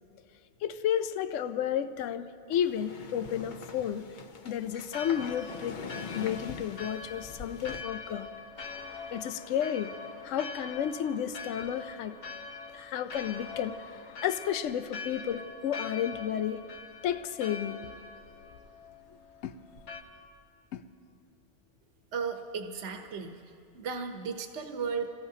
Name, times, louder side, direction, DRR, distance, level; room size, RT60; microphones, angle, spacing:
voice 1, 0.6-4.1 4.4-5.9 6.1-8.3 9.1-9.9 10.2-12.2 12.7-13.8 14.2-16.6 17.0-17.8 19.4-19.5 20.7-20.8, left 9 dB, 85° left, 11 dB, 0.9 m, -32 dB
sound 1, 2.5-7.8, left 5 dB, 50° left, 0.7 m, -43 dB
Church bell, 4.9-20.0, left 4 dB, 65° left, 1.2 m, -43 dB
voice 2, 22.1-23.4 23.7-25.1, right 5 dB, 70° right, 4 dB, 1.2 m, -35 dB
28.5 x 17.5 x 2.8 m, 2.5 s
omnidirectional pair, 1.2 m